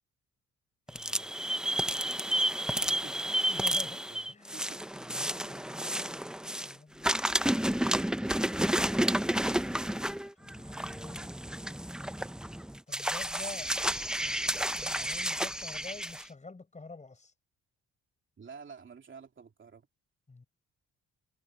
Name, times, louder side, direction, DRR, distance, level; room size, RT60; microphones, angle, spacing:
voice 1, 0.9-1.4 2.8-4.0 4.3-7.1 9.7-11.3 12.5-13.7 14.2-17.3 20.3-20.5, left 3 dB, 25° left, 5.2 m, -49 dB
sound 1, 0.9-6.7 7.0-16.2, right 1 dB, ahead, 0.7 m, -31 dB
voice 2, 2.8-3.5 3.9-4.2 4.5-4.8 18.4-19.9, right 6 dB, 40° right, 2.8 m, -50 dB
cardioid pair, 90°, 30 cm